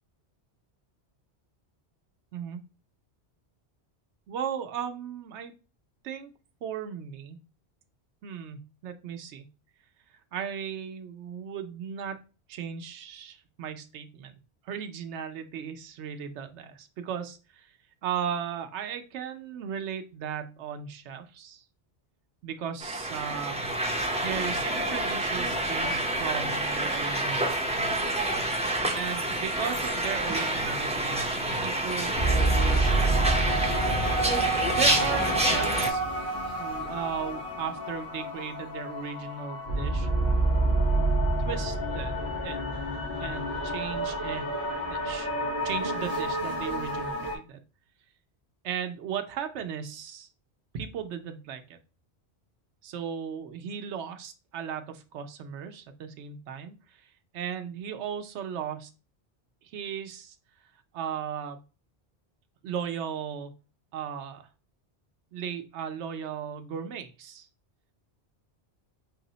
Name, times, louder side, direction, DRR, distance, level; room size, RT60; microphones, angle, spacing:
voice 1, 4.3-5.5 6.0-6.3 6.6-7.4 8.2-9.5 10.3-12.2 12.5-14.4 14.6-17.7 18.0-21.6 22.4-23.6 24.2-27.7 28.9-31.2 31.5-33.9 34.7-36.0 36.6-40.1 41.4-42.1 42.4-42.6 43.2-44.5 44.8-45.3 45.6-47.6 48.6-50.3 50.7-51.8 52.8-58.9 59.6-60.3 60.9-61.6 62.6-63.5 63.9-64.5 65.3-67.5, right 8 dB, 80° right, 7 dB, 0.9 m, -36 dB
sound 1, 22.8-35.9, right 1 dB, 10° right, 0.3 m, -28 dB
sound 2, 32.1-47.4, right 2 dB, 70° left, 2.2 m, -28 dB
4.8 x 2.0 x 3.8 m, 0.32 s
omnidirectional pair, 1.1 m